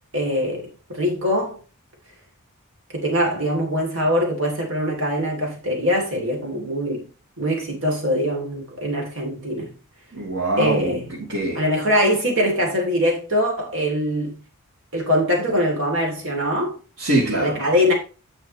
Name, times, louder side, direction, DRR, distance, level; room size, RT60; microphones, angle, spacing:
voice 1, 0.1-1.6 2.9-7.1 7.4-9.7 10.6-11.1 11.5-14.4 14.9-16.8 17.4-17.9, equal, 60° right, 3.2 m, -22 dB
voice 2, 10.1-11.6 17.0-17.6, right 1 dB, 90° right, 3.3 m, -23 dB
9.7 x 6.2 x 3.2 m
head